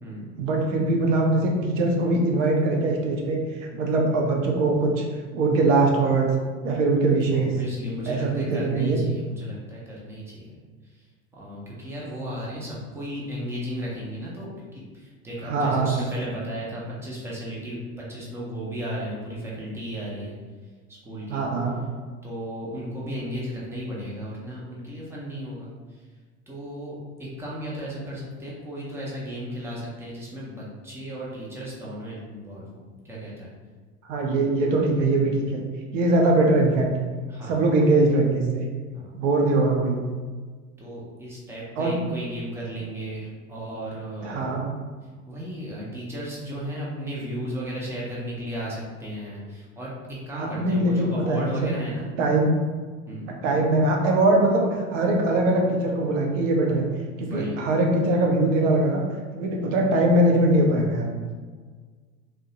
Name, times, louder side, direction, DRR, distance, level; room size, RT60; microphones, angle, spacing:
voice 1, 0.4-3.4 3.7-5.0 5.3-6.3 6.6-7.5 8.1-9.0 15.4-15.9 21.3-21.8 34.1-35.6 35.9-36.9 37.5-38.7 39.1-40.0 41.8-42.0 44.2-44.6 50.3-51.7 52.2-52.5 53.4-56.8 57.2-59.0 59.3-61.1, right 2 dB, 60° right, 1 dB, 0.7 m, -22 dB
voice 2, 7.3-11.0 11.3-20.4 20.9-21.4 22.2-26.0 26.5-33.5 37.3-37.6 38.9-39.1 40.8-44.6 45.3-52.1 53.1-53.3 57.2-57.6 61.2-61.3, equal, 5° right, -6 dB, 0.4 m, -35 dB
2.6 x 2.1 x 2.7 m, 1.5 s
figure-of-eight pair, 75°, 43 cm